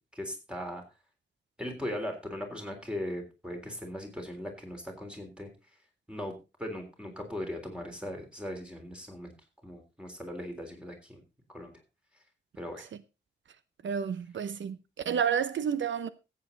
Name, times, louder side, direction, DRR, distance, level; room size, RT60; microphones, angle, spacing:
voice 1, 0.1-0.8 1.6-5.5 6.1-6.3 6.6-9.3 9.6-11.2 11.5-11.7 12.6-12.8, left 1 dB, 5° right, 3.6 m, -38 dB
voice 2, 13.8-16.1, right 7 dB, 80° right, 0.8 m, -30 dB
14.5 x 8.6 x 3.9 m
wide cardioid pair, 125°, 19 cm